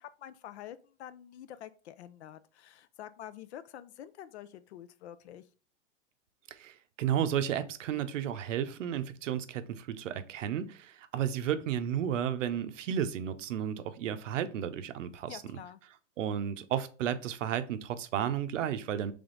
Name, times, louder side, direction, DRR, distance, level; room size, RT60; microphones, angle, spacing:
voice 1, 0.0-5.5 15.3-15.8, left 11 dB, 60° left, 0.5 m, -47 dB
voice 2, 6.5-15.4 16.2-19.1, right 9 dB, 80° right, 0.7 m, -33 dB
3.5 x 3.4 x 3.8 m
supercardioid pair, 160°, 37 cm